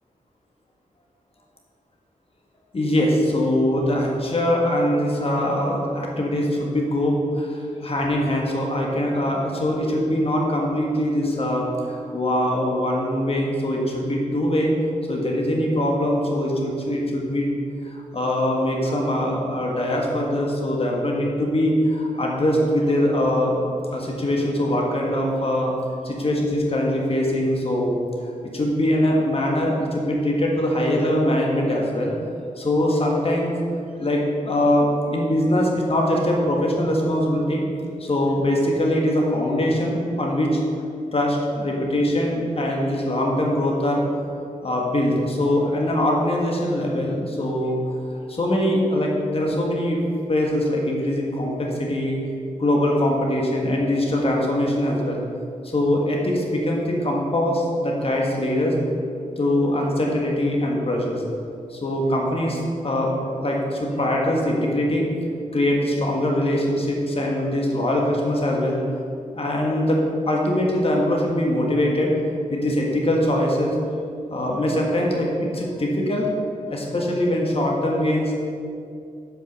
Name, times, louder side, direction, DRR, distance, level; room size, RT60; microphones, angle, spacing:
voice 1, 2.7-14.7 15.1-17.5 17.8-23.6 23.9-25.7 26.0-28.0 28.5-32.1 32.6-33.5 34.0-37.6 38.0-40.6 41.1-44.1 44.6-47.8 48.3-50.0 50.3-52.2 52.6-55.2 55.6-58.8 59.4-61.2 61.7-63.1 63.4-65.1 65.5-68.8 69.3-70.0 70.3-72.1 72.5-73.7 74.3-76.3 76.7-78.3, left 1 dB, 40° left, -1 dB, 1.7 m, -22 dB
8.1 x 5.5 x 6.6 m, 2.4 s
cardioid pair, 80°, 15 cm